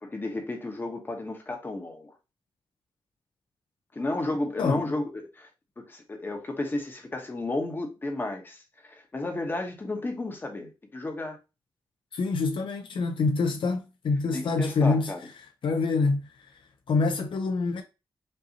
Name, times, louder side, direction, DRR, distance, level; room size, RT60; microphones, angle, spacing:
voice 1, 0.0-2.1 3.9-5.5 5.8-11.4 14.3-15.2, left 2 dB, 25° left, 1.0 m, -33 dB
voice 2, 12.1-15.1 15.6-16.3 16.9-17.8, left 4 dB, 70° left, 0.5 m, -26 dB
5.4 x 2.7 x 2.8 m
wide cardioid pair, 135°, 9 cm